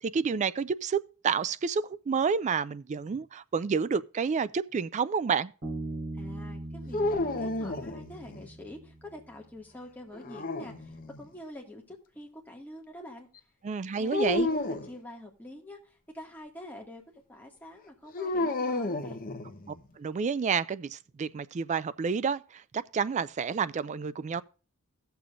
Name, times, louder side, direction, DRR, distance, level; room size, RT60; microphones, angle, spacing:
voice 1, 0.0-5.5 13.6-14.5 19.7-24.4, right 6 dB, 35° right, 0.3 m, -30 dB
Bass guitar, 5.6-9.1, right 2 dB, 50° right, 4.4 m, -40 dB
voice 2, 6.2-13.3 14.0-15.8 16.1-17.0 17.3-19.2, left 1 dB, 10° left, 1.8 m, -46 dB
sound 1, 6.9-8.5 10.1-11.3 14.1-14.9 18.1-19.8, left 2 dB, 40° left, 0.9 m, -31 dB
17.0 x 6.8 x 2.5 m
head